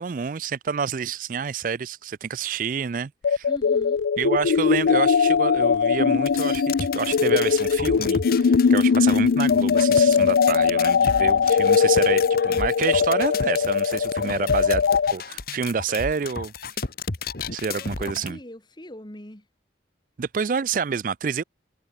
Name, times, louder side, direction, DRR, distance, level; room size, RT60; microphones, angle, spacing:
voice 1, 0.0-3.5 4.2-14.8 15.1-16.5 17.5-18.4 20.2-21.4, right 6 dB, 45° right, 0.4 m, -28 dB
sound 1, 3.2-15.1, left 6 dB, 90° left, 0.4 m, -20 dB
voice 2, 3.5-4.0 14.2-14.5 17.7-19.5, left 1 dB, 25° left, 1.9 m, -41 dB
sound 2, 6.3-18.3, left 4 dB, 55° left, 1.5 m, -33 dB
head